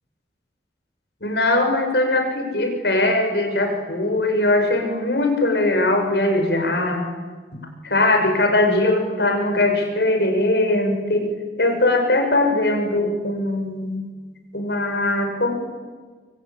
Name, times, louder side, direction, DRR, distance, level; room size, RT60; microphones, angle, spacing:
voice 1, 1.2-7.1 7.5-11.3 11.6-14.0 14.5-15.5, left 2 dB, 70° left, 5 dB, 6.0 m, -20 dB
26.0 x 24.0 x 8.9 m, 1.5 s
head